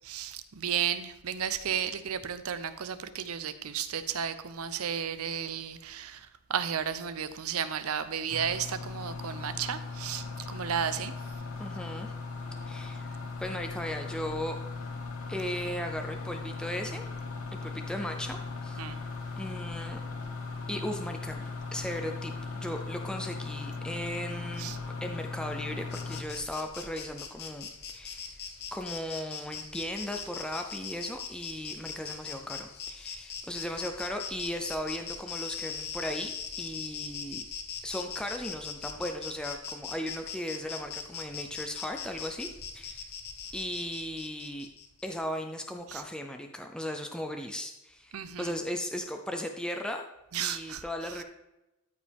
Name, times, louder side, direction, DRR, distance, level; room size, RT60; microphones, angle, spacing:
voice 1, 0.0-11.1 18.8-19.0 24.6-24.8 45.9-46.0 48.1-48.5 50.3-50.8, right 8 dB, 80° right, 12 dB, 0.6 m, -33 dB
sound 1, 8.3-26.2, left 4 dB, 85° left, 1.0 m, -38 dB
voice 2, 11.6-12.1 12.7-14.6 15.3-17.0 17.5-19.1 19.4-20.0 20.7-22.3 22.6-24.7 25.0-28.3 28.7-36.3 36.6-37.5 37.8-42.5 42.7-43.1 43.5-44.7 45.0-50.0 50.4-51.2, left 1 dB, 5° left, 4 dB, 0.5 m, -37 dB
Insect, 25.9-45.1, left 6 dB, 50° left, 0.8 m, -41 dB
13.0 x 5.2 x 3.5 m, 0.95 s
head